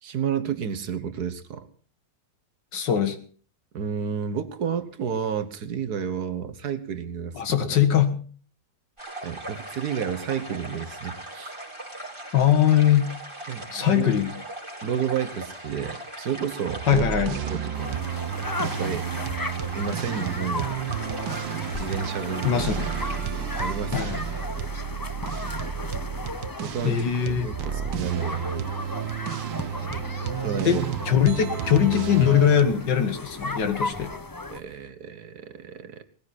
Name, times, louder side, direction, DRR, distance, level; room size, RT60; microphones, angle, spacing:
voice 1, 0.0-1.7 3.7-7.8 9.2-11.6 13.5-14.1 14.8-17.1 17.4-17.9 18.6-19.1 19.8-20.8 21.8-22.6 23.6-24.1 26.6-28.5 30.4-30.9 34.5-36.0, right 7 dB, 60° right, 11 dB, 1.6 m, -31 dB
voice 2, 2.7-3.2 7.4-8.2 12.3-13.1 13.7-14.4 16.9-17.4 22.4-22.9 23.9-24.2 26.8-27.5 30.7-34.1, left 9 dB, 75° left, 10 dB, 2.2 m, -21 dB
sound 1, 9.0-23.2, right 1 dB, 15° right, 4.3 m, -39 dB
sound 2, 16.7-32.6, right 9 dB, 90° right, 1.6 m, -32 dB
sound 3, 17.7-34.6, left 2 dB, 35° left, 0.3 m, -35 dB
19.0 x 14.5 x 4.2 m, 0.43 s
omnidirectional pair, 2.0 m